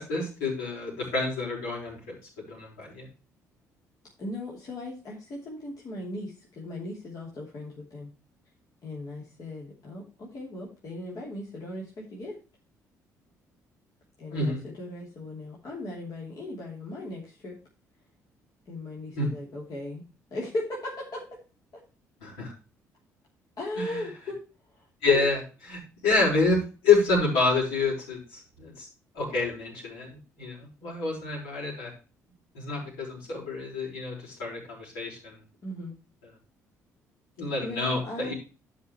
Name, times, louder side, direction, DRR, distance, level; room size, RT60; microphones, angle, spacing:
voice 1, 0.0-2.1 2.5-3.1 14.3-14.6 19.1-19.3 22.2-22.5 23.8-24.0 25.0-25.4 25.7-26.6 26.8-28.9 29.1-31.9 32.5-35.4 37.4-38.3, left 3 dB, 70° left, -4 dB, 5.1 m, -27 dB
voice 2, 4.2-8.1 8.8-12.4 14.2-17.6 18.7-20.0 20.3-21.4 23.6-24.4 24.7-25.3 35.6-35.9 37.6-38.3, left 1 dB, 45° left, -4 dB, 2.9 m, -37 dB
11.5 x 5.0 x 4.4 m, 0.33 s
figure-of-eight pair, 45°, 9 cm